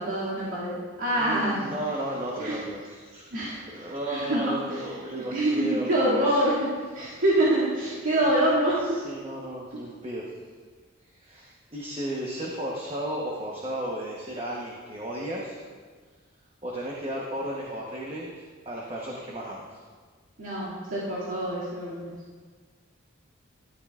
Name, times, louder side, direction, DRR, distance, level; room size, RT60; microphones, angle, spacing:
voice 1, 0.0-1.7 2.4-2.6 3.3-4.8 5.1-6.7 6.9-9.0 9.7-9.8 20.4-22.1, right 1 dB, 80° right, -9 dB, 2.3 m, -26 dB
voice 2, 1.2-3.3 3.7-6.4 7.1-7.2 8.2-8.4 8.8-10.3 11.1-15.6 16.6-19.8, right 1 dB, 30° right, -4 dB, 1.0 m, -34 dB
12.5 x 12.5 x 2.4 m, 1.5 s
head